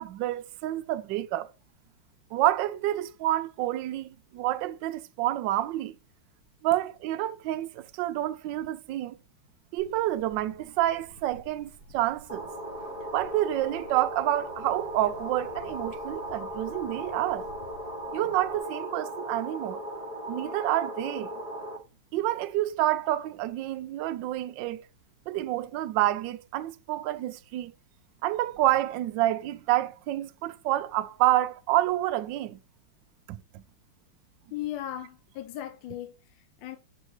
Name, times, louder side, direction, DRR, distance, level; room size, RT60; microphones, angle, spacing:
voice 1, 0.0-1.5 2.3-5.9 6.6-9.2 9.7-12.5 13.1-17.5 18.1-19.8 20.3-21.3 22.1-24.9 25.3-27.7 28.2-32.6 33.3-33.4, right 14 dB, 75° right, 1.1 m, -28 dB
Bird, 9.8-18.6, right 1 dB, 50° left, 1.5 m, -52 dB
sound 1, 12.3-21.8, equal, 20° left, 1.3 m, -37 dB
voice 2, 34.5-36.8, left 12 dB, 70° left, 1.2 m, -37 dB
6.2 x 5.1 x 3.1 m
omnidirectional pair, 2.4 m